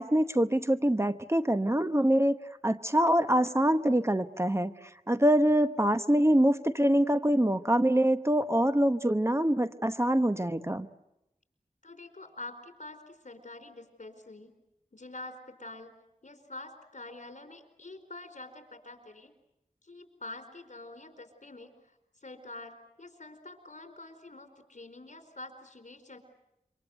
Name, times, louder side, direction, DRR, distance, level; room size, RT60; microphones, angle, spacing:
voice 1, 0.0-2.4 2.6-4.7 5.1-10.9, right 1 dB, 20° right, 11 dB, 1.0 m, -25 dB
voice 2, 11.8-14.5 14.9-15.9 16.2-19.3 19.8-26.2, left 2 dB, 60° left, 7 dB, 4.5 m, -46 dB
27.5 x 25.0 x 8.1 m, 0.87 s
wide cardioid pair, 55°, 14 cm